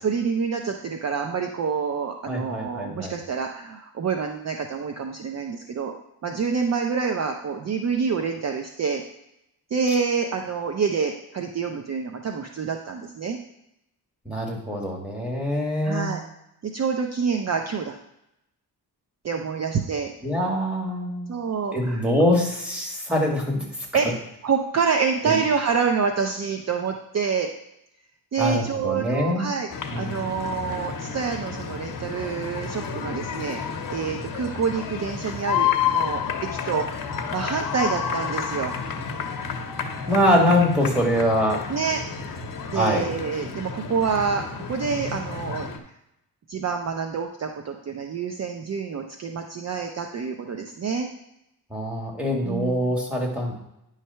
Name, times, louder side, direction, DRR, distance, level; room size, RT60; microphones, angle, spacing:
voice 1, 0.0-6.0 6.2-9.0 9.7-13.4 15.8-16.2 16.6-18.0 19.2-20.1 21.3-22.0 23.9-24.1 24.4-27.5 28.3-29.7 30.0-33.6 33.9-36.2 36.5-38.7 41.7-42.0 42.7-45.7 46.5-51.1 52.4-52.9, right 5 dB, 40° right, 3 dB, 0.6 m, -27 dB
voice 2, 2.2-3.1 14.3-16.2 20.2-21.3 21.7-23.6 25.2-25.4 28.4-29.5 29.9-30.3 40.1-41.6 42.7-43.1 51.7-53.5, left 1 dB, 5° right, -2 dB, 1.9 m, -24 dB
sound 1, 29.7-45.8, left 7 dB, 55° left, 0.9 m, -30 dB
9.6 x 3.3 x 5.6 m, 0.84 s
cardioid pair, 130°, 39 cm